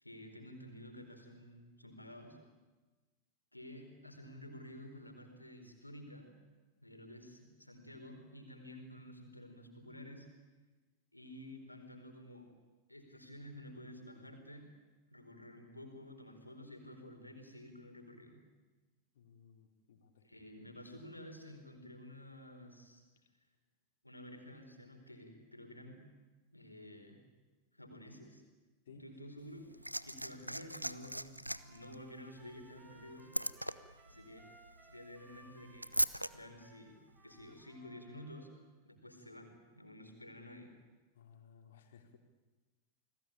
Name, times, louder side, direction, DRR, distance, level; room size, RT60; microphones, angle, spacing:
voice 1, 0.0-2.4 3.5-6.3 6.8-10.3 11.1-12.5 12.9-14.7 15.1-18.4 20.2-23.0 24.0-26.0 26.5-27.2 27.7-28.4 28.9-29.7 30.0-33.3 34.0-34.5 34.8-37.0 37.2-38.5 38.8-40.7, left 1 dB, 85° left, 5 dB, 4.3 m, -51 dB
voice 2, 19.1-20.3 28.9-29.2 41.1-42.2, left 6 dB, 60° left, 4 dB, 3.8 m, -59 dB
Liquid, 29.4-36.3 37.4-37.5, equal, 90° right, 0.8 m, -40 dB
Trumpet, 31.5-38.6, right 2 dB, 20° right, 5.7 m, -63 dB
29.0 x 20.0 x 8.9 m, 1.3 s
figure-of-eight pair, 90°, 0 cm